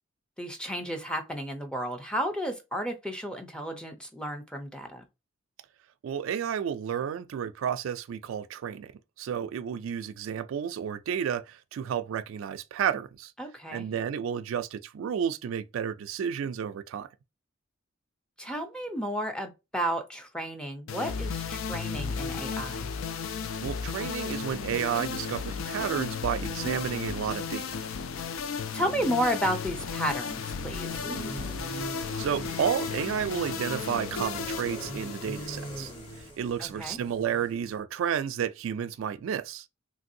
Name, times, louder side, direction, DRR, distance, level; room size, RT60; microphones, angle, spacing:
voice 1, 0.4-5.0 13.4-13.9 18.4-22.9 28.7-30.9 36.6-37.0, equal, 5° left, 0.5 m, -32 dB
voice 2, 6.0-8.9 9.2-13.3 13.7-17.1 23.6-27.7 32.2-35.9 36.4-39.6, right 8 dB, 70° right, 0.3 m, -31 dB
sound 1, 20.9-36.3, left 5 dB, 75° left, 0.4 m, -34 dB
sound 2, 30.9-37.7, right 1 dB, 25° left, 1.1 m, -41 dB
3.2 x 2.6 x 2.6 m
head